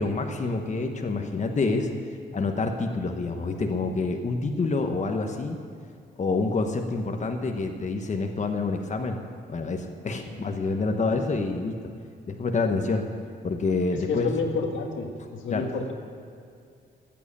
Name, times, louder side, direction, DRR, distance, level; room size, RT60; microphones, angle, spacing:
voice 1, 0.0-1.9 2.3-5.6 6.2-9.2 9.5-11.9 12.3-13.1 13.4-14.3 15.5-15.6, left 3 dB, 40° left, 4 dB, 1.2 m, -27 dB
voice 2, 13.9-15.9, left 4 dB, 90° left, 2 dB, 1.8 m, -29 dB
14.5 x 9.2 x 8.6 m, 2.4 s
cardioid pair, 105°, 20 cm